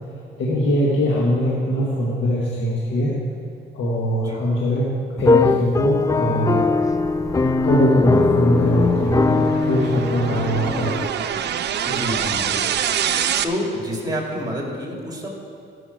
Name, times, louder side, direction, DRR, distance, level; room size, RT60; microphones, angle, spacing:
voice 1, 0.1-3.2 3.7-6.6 7.6-11.1, equal, 70° left, -5 dB, 1.9 m, -22 dB
sound 1, 5.2-11.1, left 3 dB, 15° left, 0.5 m, -20 dB
sound 2, 6.7-13.4, right 9 dB, 60° right, 0.6 m, -26 dB
voice 2, 11.8-12.7 13.1-13.2 13.4-15.3, equal, 20° right, -1 dB, 2.7 m, -28 dB
14.0 x 6.3 x 6.5 m, 2.4 s
cardioid pair, 90°, 20 cm